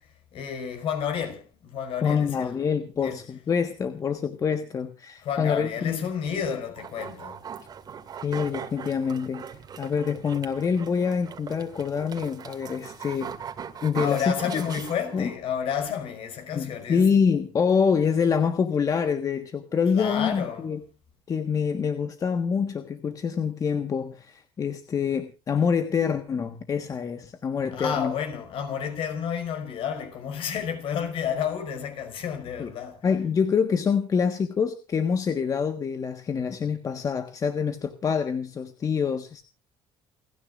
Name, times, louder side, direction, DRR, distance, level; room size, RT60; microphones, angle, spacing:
voice 1, 0.0-2.6 3.0-3.2 5.2-7.4 14.0-17.2 19.9-20.7 27.7-33.1, left 8 dB, 60° left, 5.3 m, -31 dB
voice 2, 2.0-6.1 8.2-9.4 9.8-13.3 13.8-14.6 15.1-15.3 16.5-20.8 21.3-28.1 32.6-32.7 33.0-39.4, left 6 dB, 30° left, 1.4 m, -26 dB
sound 1, 6.8-15.4, right 7 dB, 40° right, 2.3 m, -40 dB
29.0 x 10.0 x 2.5 m
cardioid pair, 125°, 11 cm